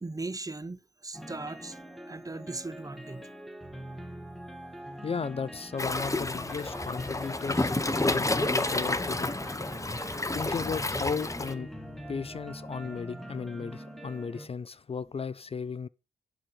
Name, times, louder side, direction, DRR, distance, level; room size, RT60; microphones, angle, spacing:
voice 1, 0.0-1.8 2.1-3.3, right 3 dB, 20° right, 0.7 m, -38 dB
sound 1, 1.1-14.5, equal, ahead, 1.7 m, -44 dB
voice 2, 5.0-7.7 8.0-9.3 10.3-11.7 12.1-15.9, left 5 dB, 40° left, 0.4 m, -35 dB
Waves surf, 5.8-11.5, left 2 dB, 20° left, 1.0 m, -30 dB
11.0 x 4.0 x 6.1 m
supercardioid pair, 40°, 16 cm